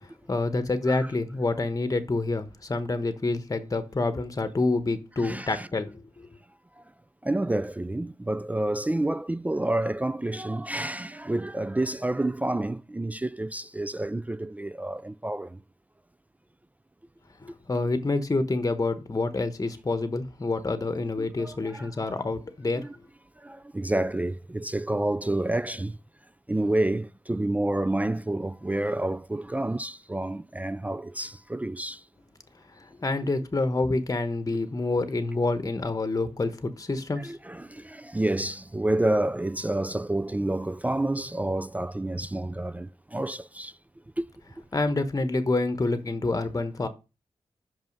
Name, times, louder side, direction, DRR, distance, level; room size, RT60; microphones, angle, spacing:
voice 1, 0.0-6.3 17.4-22.9 32.8-37.4 44.7-46.9, left 2 dB, 30° left, 1.0 m, -27 dB
voice 2, 5.2-5.7 6.8-6.9 7.2-15.6 21.2-22.1 22.8-22.9 23.4-26.0 26.5-32.0 37.2-43.7 44.2-44.3, right 1 dB, 15° right, 0.3 m, -29 dB
5.7 x 5.5 x 5.2 m
cardioid pair, 55°, 11 cm